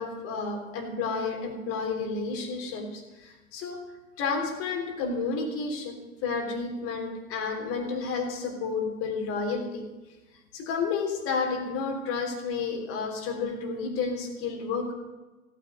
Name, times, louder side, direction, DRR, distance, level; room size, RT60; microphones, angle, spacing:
voice 1, 0.0-3.8 4.2-5.9 6.2-9.8 10.5-14.9, left 4 dB, 30° left, 3 dB, 3.5 m, -31 dB
16.0 x 9.1 x 9.0 m, 1.1 s
figure-of-eight pair, 105°, 44 cm